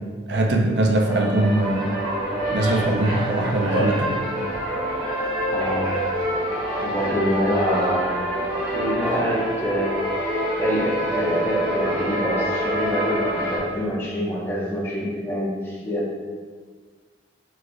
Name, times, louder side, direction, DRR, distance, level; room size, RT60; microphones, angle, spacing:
voice 1, 0.3-1.9 2.5-4.3, right 1 dB, 75° right, 2 dB, 0.5 m, -21 dB
sound 1, 0.8-13.6, equal, 25° right, 1.2 m, -26 dB
voice 2, 5.5-5.9 6.8-8.1 8.7-10.1 10.6-16.2, equal, 15° left, -7 dB, 1.0 m, -26 dB
4.7 x 4.2 x 2.3 m, 1.5 s
head